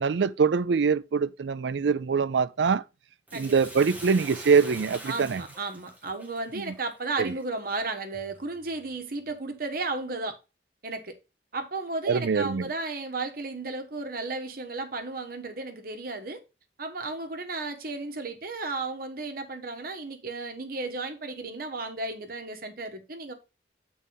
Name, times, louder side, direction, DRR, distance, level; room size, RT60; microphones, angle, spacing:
voice 1, 0.0-2.8 3.3-5.4 6.5-6.7 7.2-7.3 12.1-12.7, right 5 dB, 85° right, 0.5 m, -24 dB
Bathtub (filling or washing), 3.3-7.8 8.3-8.4, right 1 dB, 10° right, 1.6 m, -44 dB
voice 2, 5.1-10.4 10.8-11.1 11.5-16.4 16.8-23.3, right 3 dB, 55° right, 1.3 m, -34 dB
7.5 x 4.1 x 5.3 m
head